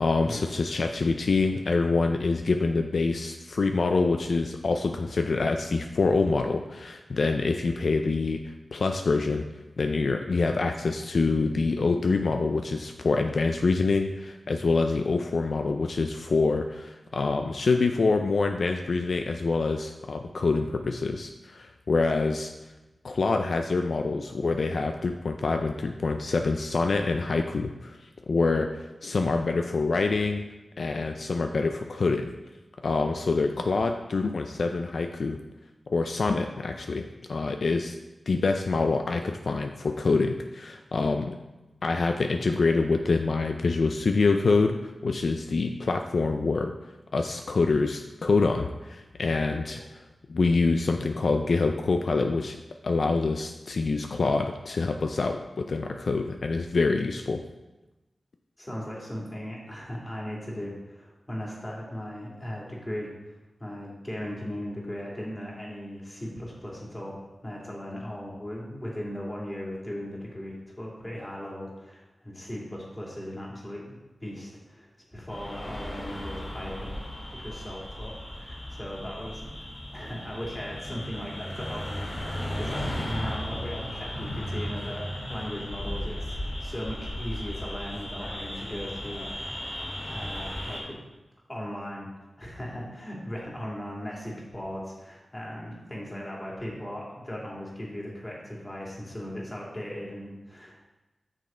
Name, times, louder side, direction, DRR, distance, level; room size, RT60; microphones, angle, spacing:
voice 1, 0.0-9.4 9.8-22.5 23.0-30.4 30.8-32.3 32.8-35.4 35.9-37.9 38.3-41.3 41.8-46.7 47.1-49.8 50.3-52.6 52.8-57.4, left 3 dB, 70° left, 5 dB, 0.4 m, -26 dB
voice 2, 58.6-77.0 77.3-79.5 79.9-91.0 91.5-92.1 92.4-100.8, equal, 20° left, -4 dB, 2.4 m, -38 dB
sound 1, 75.3-90.8, left 1 dB, 55° left, 2.5 m, -36 dB
6.5 x 6.3 x 4.3 m, 1.1 s
wide cardioid pair, 70°, 0 cm